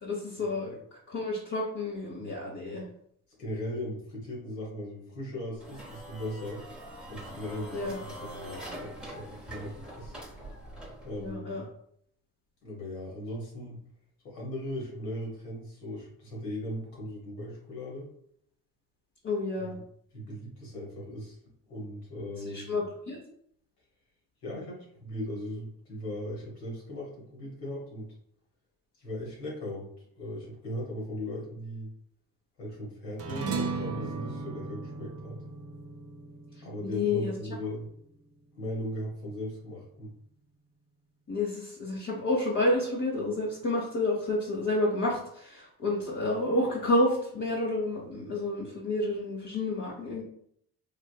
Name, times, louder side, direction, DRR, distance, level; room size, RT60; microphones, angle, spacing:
voice 1, 0.0-0.8 1.1-2.8 7.7-8.0 11.2-11.6 19.2-19.8 22.5-23.2 36.8-37.4 41.3-50.2, left 2 dB, 40° left, -4 dB, 0.8 m, -30 dB
voice 2, 3.4-6.6 7.1-10.1 11.0-11.6 12.6-13.8 14.2-18.1 19.6-19.8 20.1-21.4 21.7-22.8 24.4-28.1 29.0-31.9 32.6-35.4 36.6-37.9 38.5-40.1, left 1 dB, 90° left, -3 dB, 1.1 m, -38 dB
sound 1, 5.5-11.3, right 1 dB, ahead, 0.9 m, -44 dB
sound 2, 33.2-37.9, right 4 dB, 30° right, 0.7 m, -36 dB
3.3 x 2.5 x 2.2 m, 0.69 s
hypercardioid pair, 50°, 47 cm